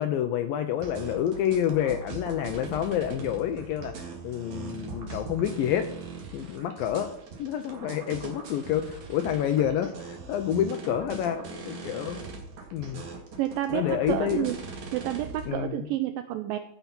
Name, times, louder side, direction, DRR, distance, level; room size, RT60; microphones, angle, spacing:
voice 1, 0.0-5.9 6.3-7.1 7.4-12.2 12.7-13.0 13.7-14.5 15.5-15.9, left 10 dB, 85° left, 8 dB, 2.1 m, -28 dB
sound 1, 0.8-15.5, right 4 dB, 50° right, 2.9 m, -40 dB
voice 2, 13.4-14.6 14.9-16.6, right 13 dB, 85° right, 9 dB, 2.0 m, -29 dB
15.0 x 5.7 x 5.9 m, 0.79 s
omnidirectional pair, 4.7 m